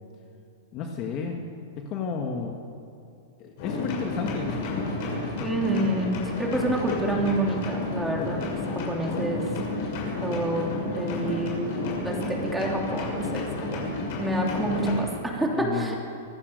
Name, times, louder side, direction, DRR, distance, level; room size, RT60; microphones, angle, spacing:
voice 1, 0.7-1.4 1.8-2.6 3.4-4.9 15.5-15.9, left 5 dB, 30° left, 2 dB, 1.7 m, -32 dB
sound 1, 3.6-15.0, left 2 dB, 45° left, 6.8 m, -31 dB
voice 2, 5.4-9.4 10.2-13.9 14.2-16.0, right 1 dB, 5° right, -1 dB, 3.0 m, -28 dB
25.5 x 16.0 x 6.7 m, 2.4 s
supercardioid pair, 160°, 0 cm